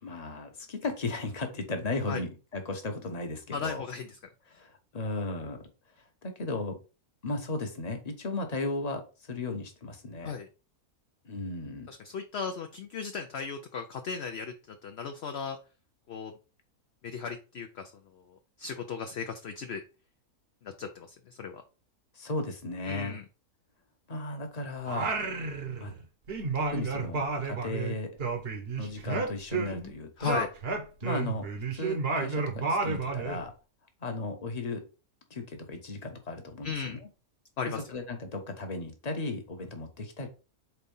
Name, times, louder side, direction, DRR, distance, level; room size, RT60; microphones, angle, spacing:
voice 1, 0.0-3.9 4.5-5.6 6.2-6.8 7.2-10.3 11.2-11.9 22.1-23.2 24.1-25.1 25.8-25.9 26.5-28.2 28.7-30.5 31.0-33.5 34.0-34.8 35.3-37.1 37.6-40.3, left 2 dB, 30° left, 4 dB, 1.1 m, -35 dB
voice 2, 3.5-4.1 10.2-10.5 11.9-15.6 16.1-16.3 17.0-19.8 20.6-21.6 22.8-23.2 30.2-30.5 36.6-37.0 37.6-37.8, left 6 dB, 55° left, 5 dB, 0.8 m, -36 dB
Singing, 24.9-26.0 26.3-29.9 30.2-33.4, right 4 dB, 45° right, 1.1 m, -31 dB
4.6 x 4.0 x 5.4 m, 0.33 s
omnidirectional pair, 1.6 m